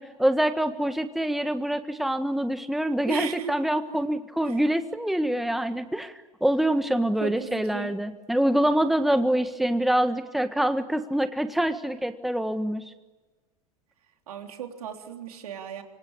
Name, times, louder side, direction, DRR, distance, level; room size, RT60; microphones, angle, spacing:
voice 1, 0.0-6.1 6.4-12.8, right 1 dB, ahead, 9 dB, 1.6 m, -25 dB
voice 2, 3.1-3.5 3.9-4.0 4.4-4.6 7.2-8.0 14.3-15.8, right 8 dB, 75° right, 4 dB, 3.7 m, -36 dB
26.0 x 25.0 x 8.9 m, 1.2 s
hypercardioid pair, 90°, 19 cm